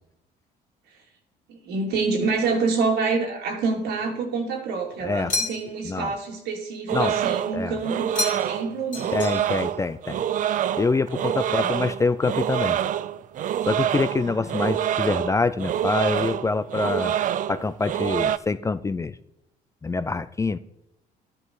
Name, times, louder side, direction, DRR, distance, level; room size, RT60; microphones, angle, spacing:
voice 1, 1.5-9.1 11.4-11.8 14.2-14.5, right 4 dB, 80° right, 3.0 m, -27 dB
sound 1, 5.3-5.9 8.1-8.6 8.9-9.7, left 4 dB, 50° left, 2.5 m, -30 dB
sound 2, 6.9-18.4, right 10 dB, 50° right, 0.5 m, -26 dB
voice 2, 9.1-10.2 10.8-12.8 13.7-17.2 17.5-19.2 19.8-20.6, left 3 dB, 20° left, 0.4 m, -25 dB
13.0 x 11.0 x 4.7 m
cardioid pair, 110°, 17 cm